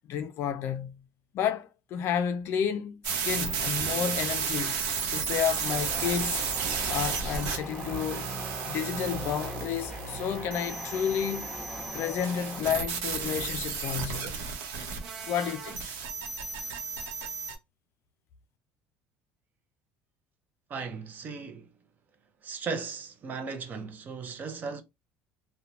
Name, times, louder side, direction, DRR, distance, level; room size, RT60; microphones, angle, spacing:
voice 1, 0.1-1.0 1.3-4.8 5.1-6.4 6.9-8.3 8.6-11.5 11.9-14.4 15.3-15.8, left 8 dB, 55° left, 0.4 m, -31 dB
sound 1, 3.0-17.6, right 5 dB, 85° right, 0.8 m, -33 dB
sound 2, 5.6-12.6, equal, ahead, 0.9 m, -41 dB
voice 2, 20.7-21.7 22.4-24.8, right 5 dB, 35° right, 0.6 m, -36 dB
2.9 x 2.1 x 2.4 m
cardioid pair, 130°, 5 cm